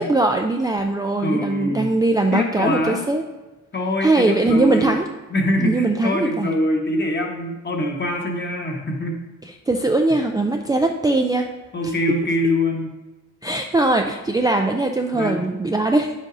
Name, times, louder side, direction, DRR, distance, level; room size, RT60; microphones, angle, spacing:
voice 1, 0.0-3.2 4.0-5.1 5.6-6.5 9.7-11.5 13.4-16.1, right 2 dB, 15° right, 2 dB, 0.3 m, -20 dB
voice 2, 1.2-1.9 2.3-3.0 3.7-4.9 5.3-9.2 11.7-12.9 15.1-15.5, left 1 dB, 35° left, 1 dB, 1.2 m, -23 dB
9.5 x 7.3 x 2.6 m, 1.1 s
wide cardioid pair, 150°, 30 cm